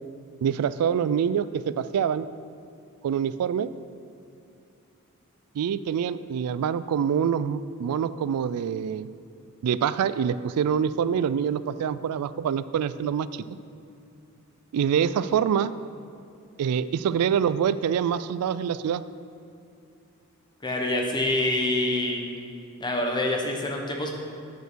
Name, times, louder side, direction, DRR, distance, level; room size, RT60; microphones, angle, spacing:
voice 1, 0.4-2.3 3.0-3.7 5.6-9.1 9.6-13.5 14.7-15.7 16.6-19.0, right 8 dB, 85° right, 16 dB, 0.3 m, -25 dB
voice 2, 20.6-22.2 22.8-24.1, left 1 dB, 20° left, 1 dB, 1.1 m, -26 dB
8.9 x 5.3 x 6.2 m, 2.6 s
head